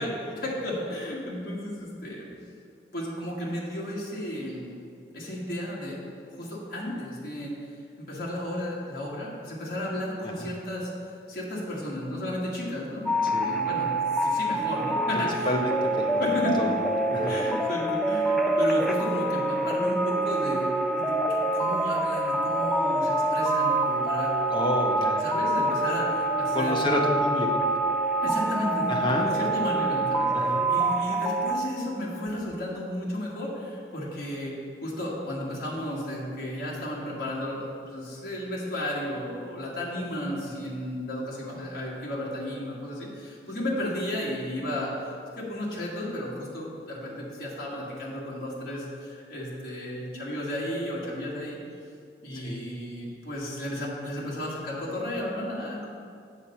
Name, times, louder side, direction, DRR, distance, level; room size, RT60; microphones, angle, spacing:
voice 1, 0.0-2.3 2.9-4.8 5.1-6.0 6.3-7.5 8.0-10.9 11.3-13.9 14.2-15.6 16.2-16.7 17.2-24.3 25.2-27.0 28.2-51.6 52.2-55.9, left 1 dB, 55° left, -5 dB, 1.7 m, -33 dB
sound 1, 13.1-31.5, right 2 dB, ahead, 0.4 m, -26 dB
voice 2, 13.2-13.6 15.1-16.7 17.1-17.3 24.5-25.2 26.5-27.5 28.9-29.3 30.3-30.6 52.4-52.6, left 1 dB, 25° left, 0 dB, 0.8 m, -29 dB
7.8 x 4.3 x 6.8 m, 2.4 s
head